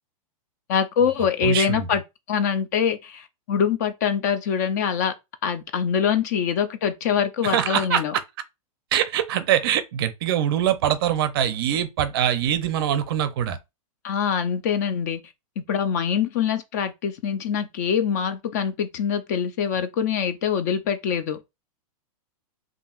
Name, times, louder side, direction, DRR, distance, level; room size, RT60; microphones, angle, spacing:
voice 1, 0.7-2.0 2.3-5.1 5.4-8.1 14.0-15.2 15.7-21.4, left 7 dB, 30° left, 0.3 m, -24 dB
voice 2, 1.4-2.0 7.4-8.2 8.9-13.6, right 10 dB, 40° right, 0.5 m, -23 dB
5.6 x 2.6 x 2.4 m
supercardioid pair, 175°, 18 cm